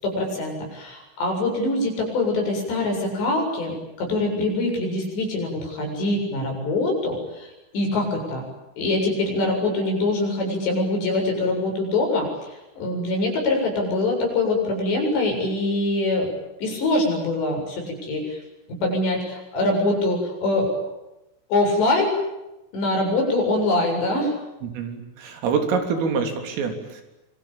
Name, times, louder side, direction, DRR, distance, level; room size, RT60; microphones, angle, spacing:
voice 1, 0.0-8.4 8.8-16.3 16.6-18.4 18.7-20.8 21.5-22.2 22.7-24.3, left 2 dB, 60° left, 2 dB, 9.6 m, -24 dB
voice 2, 24.6-27.0, right 5 dB, 80° right, 5 dB, 6.1 m, -26 dB
26.5 x 25.5 x 8.9 m, 0.97 s
omnidirectional pair, 5.8 m